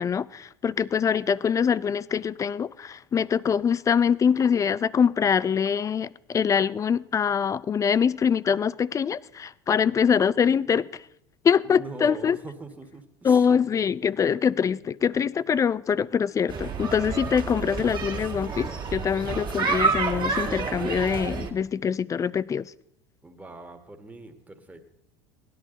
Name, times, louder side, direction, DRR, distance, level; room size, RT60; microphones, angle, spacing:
voice 1, 0.0-10.9 11.4-12.4 13.2-22.7, left 7 dB, 25° left, 0.4 m, -24 dB
voice 2, 11.6-13.5 23.2-24.9, right 3 dB, 10° right, 1.7 m, -42 dB
sound 1, 16.5-21.5, right 4 dB, 35° right, 2.0 m, -29 dB
17.0 x 11.0 x 3.9 m
supercardioid pair, 95°, 13 cm